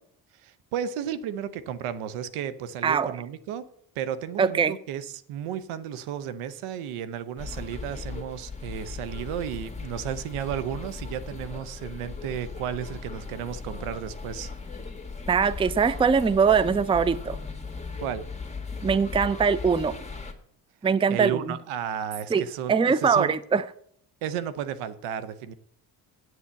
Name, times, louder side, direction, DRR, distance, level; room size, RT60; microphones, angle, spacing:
voice 1, 0.4-3.6 4.0-14.5 18.0-18.2 21.1-23.4 24.2-25.5, right 9 dB, 75° right, 0.9 m, -33 dB
voice 2, 4.4-4.7 15.3-17.4 18.8-19.9 20.8-21.5 22.3-22.4 22.7-23.6, right 6 dB, 10° right, 0.5 m, -22 dB
sound 1, 7.4-20.3, left 4 dB, 15° left, 1.8 m, -37 dB
8.1 x 7.4 x 7.6 m
hypercardioid pair, 55°, 50 cm